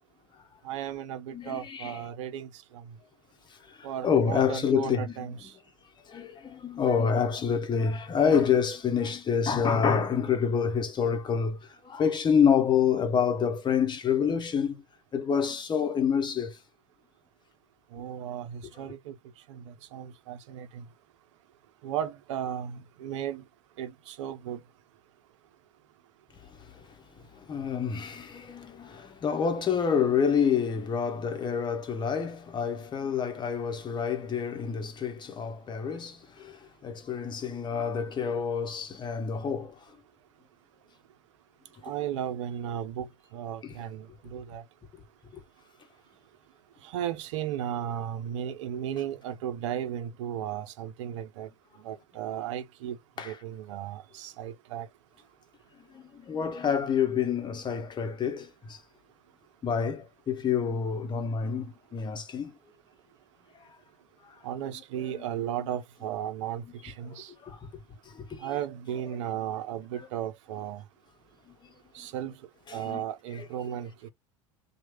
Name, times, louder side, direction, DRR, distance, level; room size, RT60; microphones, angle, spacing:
voice 1, 0.6-2.5 2.7-2.8 3.8-5.5 17.9-19.1 19.5-20.8 21.8-23.4 23.8-24.6 41.8-43.1 43.3-44.6 46.9-51.5 51.8-53.0 53.2-54.9 64.4-67.3 68.4-70.8 71.9-72.3 72.7-73.9, right 10 dB, 65° right, 0.8 m, -35 dB
voice 2, 1.3-2.0 3.8-5.3 6.1-11.6 11.8-14.8 15.1-16.6 27.3-39.7 43.6-43.7 45.3-45.4 53.2-53.4 55.9-58.8 59.6-62.5 65.0-65.2 67.0-67.1 67.4-67.6 68.1-68.5 70.0-70.1 72.7-73.0 73.4-73.5, left 7 dB, 25° left, 1.0 m, -28 dB
3.1 x 2.4 x 3.0 m
hypercardioid pair, 80°, 17 cm